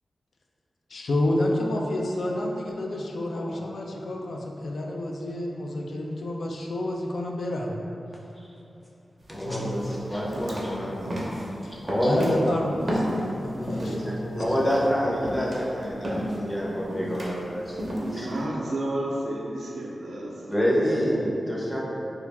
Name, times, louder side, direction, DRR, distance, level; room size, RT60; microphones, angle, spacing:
voice 1, 0.9-7.8 9.4-9.8 11.6-14.5, left 1 dB, 70° left, -1 dB, 0.3 m, -29 dB
voice 2, 3.3-3.6 8.4-8.5 9.3-11.1 11.9-12.2 13.7-14.1 14.4-17.8 18.1-18.3 20.5-21.8, equal, 15° left, -5 dB, 0.6 m, -27 dB
sound 1, 9.2-9.4 9.8-14.0 14.4-18.4, equal, 40° right, 0.5 m, -32 dB
voice 3, 18.0-20.6, right 1 dB, 90° right, -4 dB, 0.5 m, -31 dB
3.1 x 2.3 x 3.3 m, 2.8 s
wide cardioid pair, 130°, 0 cm